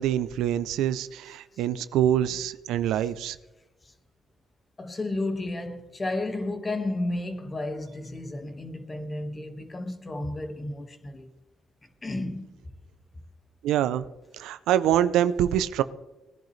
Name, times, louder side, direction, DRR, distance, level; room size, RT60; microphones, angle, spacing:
voice 1, 0.0-3.4 13.6-14.1 14.4-15.8, right 11 dB, 90° right, 0.5 m, -25 dB
voice 2, 4.8-11.3 12.0-12.5, left 2 dB, 25° left, 1.6 m, -32 dB
20.0 x 10.5 x 3.3 m
cardioid pair, 90°, 0 cm